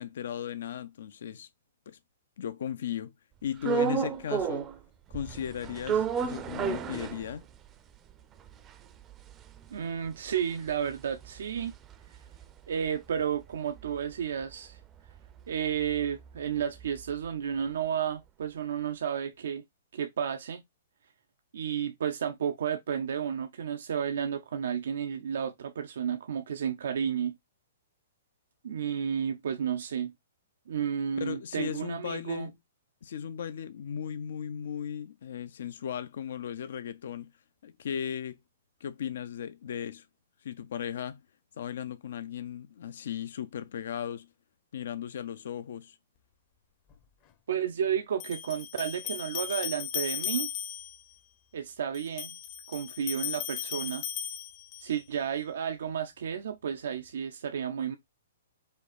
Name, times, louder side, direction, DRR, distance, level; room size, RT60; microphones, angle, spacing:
voice 1, 0.0-1.5 1.9-2.0 2.4-3.1 3.4-4.7 5.1-7.4 31.2-32.5 33.0-37.3 37.6-38.4 38.8-40.1 40.4-41.2 41.6-44.3 44.7-46.0, left 8 dB, 70° left, 0.5 m, -36 dB
sound 1, 3.6-4.8 5.1-7.7 8.1-8.2 8.4-12.9 13.2-17.3, right 7 dB, 20° right, 0.5 m, -34 dB
voice 2, 9.7-11.7 12.1-12.2 12.7-14.8 15.5-19.6 19.9-20.6 21.5-27.4 28.6-30.1 30.7-32.5 47.5-50.5 51.5-52.4 52.7-54.0 54.8-58.0, right 8 dB, 75° right, 0.5 m, -32 dB
sound 2, 46.9-47.0 48.2-51.0 51.9-55.0, left 9 dB, 35° left, 0.7 m, -36 dB
5.1 x 2.4 x 4.2 m
hypercardioid pair, 140°, 0 cm